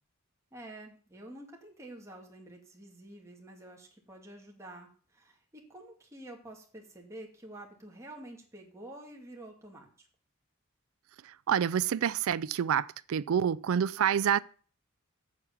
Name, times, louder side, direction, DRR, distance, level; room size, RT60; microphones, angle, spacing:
voice 1, 0.5-10.1, right 1 dB, 15° right, 2.2 m, -49 dB
voice 2, 11.5-14.4, right 8 dB, 80° right, 0.4 m, -27 dB
8.3 x 7.2 x 7.0 m
head